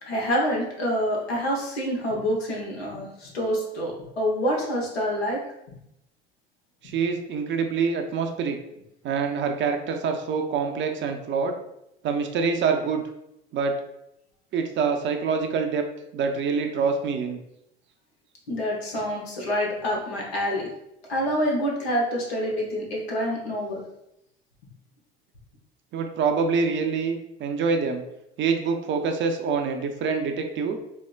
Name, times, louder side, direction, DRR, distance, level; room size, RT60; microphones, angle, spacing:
voice 1, 0.0-5.4 5.7-5.8 18.5-20.7 21.1-23.8, equal, 85° left, -2 dB, 0.9 m, -27 dB
voice 2, 6.8-8.6 9.0-11.6 12.0-13.0 13.5-13.8 14.5-15.9 16.1-17.4 25.9-28.0 28.4-30.8, right 5 dB, 40° right, 5 dB, 0.5 m, -25 dB
4.4 x 2.1 x 2.3 m, 0.82 s
hypercardioid pair, 70°, 30 cm